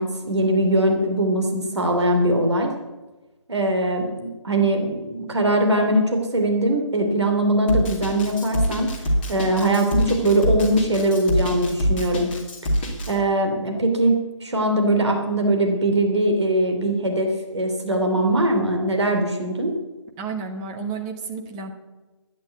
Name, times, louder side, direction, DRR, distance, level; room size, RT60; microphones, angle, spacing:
voice 1, 0.0-2.7 3.5-8.9 9.3-12.3 13.1-19.7, right 1 dB, 60° right, 2 dB, 2.9 m, -21 dB
Drum kit, 7.7-13.1, equal, 20° left, 2.6 m, -24 dB
voice 2, 20.2-21.7, right 5 dB, 10° right, 3 dB, 1.0 m, -31 dB
12.5 x 10.0 x 8.2 m, 1.2 s
figure-of-eight pair, 155°, 16 cm